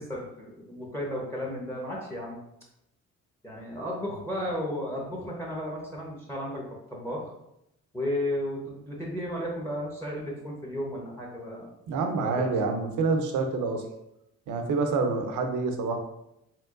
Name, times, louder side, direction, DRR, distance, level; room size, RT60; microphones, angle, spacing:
voice 1, 0.0-2.4 3.4-7.3 7.9-11.7 12.2-12.7, left 1 dB, 10° left, -1 dB, 1.1 m, -34 dB
voice 2, 11.9-13.8 14.5-16.0, right 4 dB, 80° right, 5 dB, 0.7 m, -27 dB
4.4 x 3.6 x 2.6 m, 0.82 s
cardioid pair, 90°, 30 cm